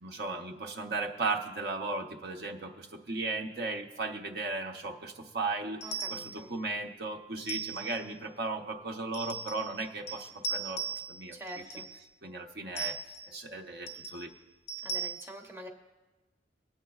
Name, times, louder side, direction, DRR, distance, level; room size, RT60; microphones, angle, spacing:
voice 1, 0.0-5.8 6.1-10.8 11.1-11.3 12.2-13.0 13.3-14.3, right 3 dB, 60° right, 1 dB, 0.8 m, -36 dB
sound 1, 5.8-6.4 7.4-8.0 9.1-9.8 10.1-11.2 11.5-12.0 12.8-13.3 13.9-14.2 14.7-15.1, right 4 dB, 70° left, 0.6 m, -38 dB
voice 2, 5.8-6.5 11.3-11.9 14.8-15.7, right 1 dB, 15° right, 0 dB, 0.8 m, -45 dB
24.5 x 8.6 x 2.4 m, 1.2 s
head